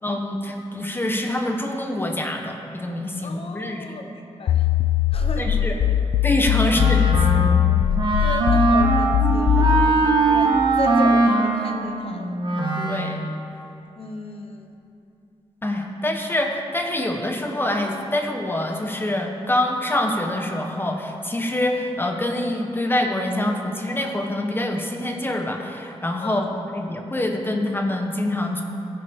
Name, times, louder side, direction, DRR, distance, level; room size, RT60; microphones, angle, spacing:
voice 1, 0.0-3.8 5.4-5.8 6.2-7.0 7.3-7.6 12.8-13.3 15.6-28.6, left 1 dB, 20° left, 3 dB, 1.1 m, -25 dB
voice 2, 3.2-4.7 5.1-6.1 6.6-6.8 8.2-12.4 14.0-14.8 26.2-26.5, left 3 dB, 55° left, 4 dB, 1.1 m, -34 dB
sound 1, 4.5-9.9, left 10 dB, 85° left, 0.4 m, -20 dB
Wind instrument woodwind instrument, 6.7-13.3, right 3 dB, 45° right, 1.6 m, -21 dB
16.0 x 9.1 x 3.7 m, 2.7 s
cardioid pair, 95°, 11 cm